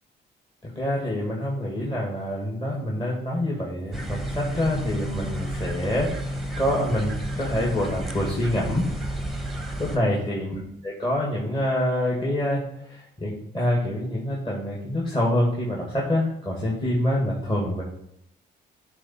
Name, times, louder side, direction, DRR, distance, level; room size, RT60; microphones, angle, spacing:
voice 1, 0.6-8.9 9.8-17.8, left 1 dB, 25° left, -3 dB, 1.9 m, -26 dB
sound 1, 3.9-10.0, right 1 dB, ahead, 1.1 m, -31 dB
8.9 x 3.7 x 4.3 m, 0.76 s
cardioid pair, 90°, 20 cm